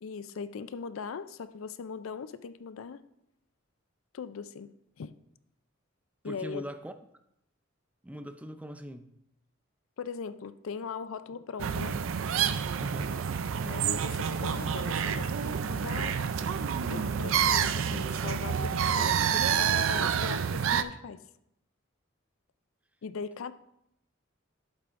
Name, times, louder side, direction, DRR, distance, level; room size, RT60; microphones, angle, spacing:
voice 1, 0.0-3.0 4.1-5.1 6.2-6.6 10.0-12.0 13.6-16.2 16.9-21.2 23.0-23.5, left 5 dB, 90° left, 0.4 m, -40 dB
voice 2, 6.2-6.9 8.0-9.1 12.8-13.2, equal, 5° right, 0.4 m, -41 dB
sound 1, 11.6-20.8, right 7 dB, 80° right, 0.4 m, -28 dB
11.0 x 8.2 x 2.5 m
head